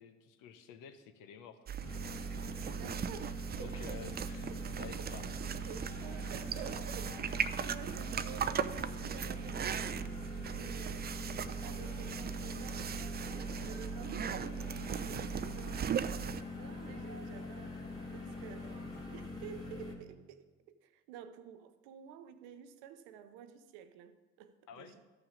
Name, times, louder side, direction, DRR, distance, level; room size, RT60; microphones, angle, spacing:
voice 1, 0.0-1.8 3.6-4.5 4.8-5.2 24.7-25.0, left 8 dB, 70° left, 0.8 m, -51 dB
sound 1, 1.7-16.4, right 9 dB, 30° right, 0.4 m, -38 dB
sound 2, 1.8-19.9, left 3 dB, 10° left, 2.2 m, -44 dB
voice 2, 2.8-4.0 4.5-4.6 5.0-5.1 5.6-11.0 11.6-17.8 18.1-25.0, right 8 dB, 80° right, 0.7 m, -51 dB
sound 3, 5.8-19.3, equal, 30° left, 2.0 m, -57 dB
12.5 x 5.8 x 5.1 m
hypercardioid pair, 45°, 33 cm